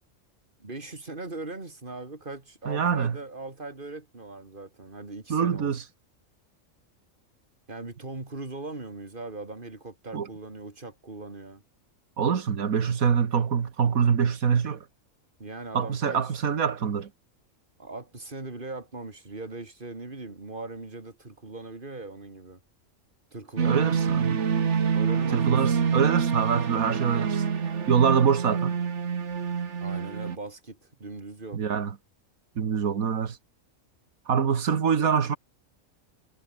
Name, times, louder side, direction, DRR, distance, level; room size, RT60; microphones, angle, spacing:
voice 1, 0.6-5.7 7.7-11.6 15.4-16.2 17.8-22.6 23.3-24.0 24.9-26.1 29.8-31.6, right 3 dB, 35° right, 3.4 m, -40 dB
voice 2, 2.7-3.1 5.3-5.8 10.1-10.3 12.2-14.9 15.7-17.1 23.6-24.4 25.3-27.4 27.9-28.7 31.5-32.0 32.6-33.4 34.3-35.4, right 7 dB, 90° right, 1.9 m, -25 dB
sound 1, 23.6-30.4, right 6 dB, 60° right, 1.7 m, -26 dB
omnidirectional pair, 1.4 m